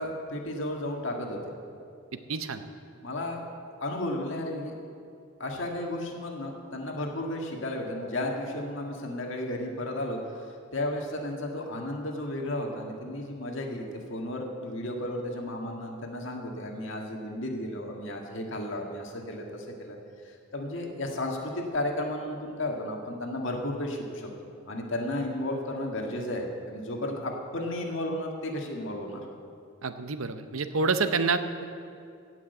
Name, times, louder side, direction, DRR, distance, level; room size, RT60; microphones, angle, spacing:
voice 1, 0.0-1.4 3.0-3.5 3.8-4.8 5.4-10.5 10.7-20.0 20.2-24.3 24.7-29.2, left 1 dB, 65° left, 1 dB, 1.8 m, -33 dB
voice 2, 2.3-2.6 29.8-31.6, right 4 dB, 80° right, 10 dB, 0.7 m, -28 dB
16.0 x 6.3 x 8.2 m, 2.5 s
head